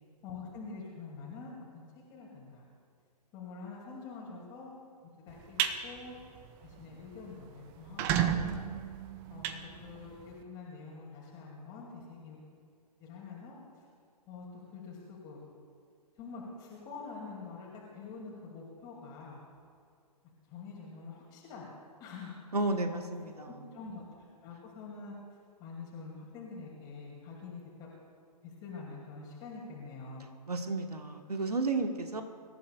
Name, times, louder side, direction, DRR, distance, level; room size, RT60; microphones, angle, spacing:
voice 1, 0.2-2.6 3.3-4.7 5.3-6.1 6.6-8.3 9.3-9.5 9.8-12.4 13.0-13.6 14.3-15.4 16.2-19.4 20.5-21.7 22.0-22.4 22.9-23.0 23.3-24.0 24.4-25.1 25.6-27.9 28.4-30.3, left 4 dB, 20° left, -4 dB, 2.6 m, -46 dB
sound 1, 5.3-5.8 6.2-6.4 6.8-6.9 7.1-7.2 7.8-10.3, right 9 dB, 10° right, 0.4 m, -32 dB
voice 2, 22.5-23.5 30.5-32.2, right 3 dB, 70° right, 6 dB, 1.5 m, -32 dB
25.5 x 14.0 x 2.4 m, 2.2 s
figure-of-eight pair, 125°, 21 cm